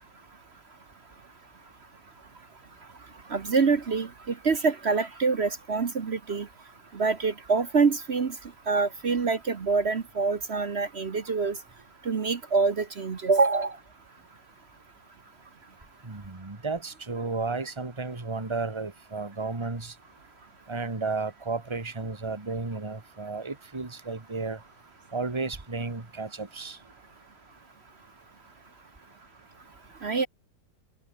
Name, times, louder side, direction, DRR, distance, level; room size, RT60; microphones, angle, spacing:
voice 1, 3.3-4.1 4.4-6.5 6.9-8.3 8.7-11.6 12.0-13.7 30.0-30.3, right 4 dB, 40° right, 1.3 m, -25 dB
voice 2, 16.0-19.9 20.7-24.6 25.1-26.8, right 3 dB, 15° right, 1.9 m, -33 dB
omnidirectional pair, 1.8 m